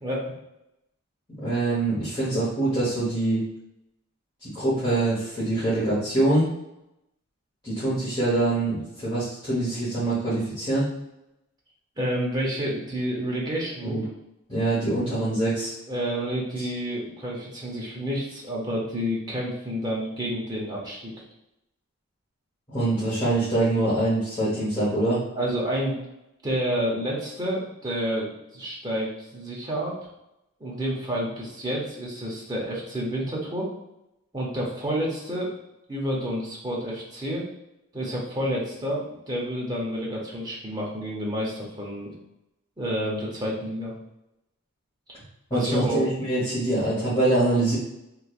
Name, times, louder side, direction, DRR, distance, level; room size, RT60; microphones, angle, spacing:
voice 1, 0.0-0.3 12.0-14.0 15.9-21.1 25.3-26.0 26.4-29.9 30.6-33.7 34.3-35.5 35.9-37.4 37.9-42.1 42.8-43.9 45.5-46.1, equal, 15° right, -4 dB, 0.7 m, -29 dB
voice 2, 1.3-3.4 4.4-6.5 7.6-10.9 13.8-14.0 14.5-15.7 16.6-16.7 22.7-25.2 45.5-47.8, right 2 dB, 20° left, -12 dB, 1.1 m, -24 dB
3.1 x 3.0 x 2.4 m, 0.87 s
head